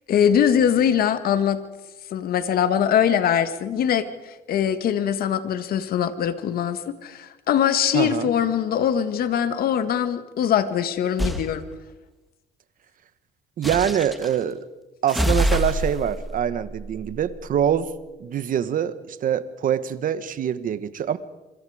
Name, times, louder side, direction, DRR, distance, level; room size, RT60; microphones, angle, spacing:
voice 1, 0.1-1.6 2.1-11.7, left 9 dB, 60° left, 11 dB, 1.8 m, -22 dB
voice 2, 7.9-8.3 13.6-14.6 15.0-17.9 18.2-21.2, right 9 dB, 55° right, 13 dB, 1.4 m, -24 dB
sound 1, 11.2-11.5 13.6-14.4 15.1-17.7, equal, ahead, 2.2 m, -26 dB
26.5 x 25.0 x 5.0 m, 1.1 s
cardioid pair, 110°, 17 cm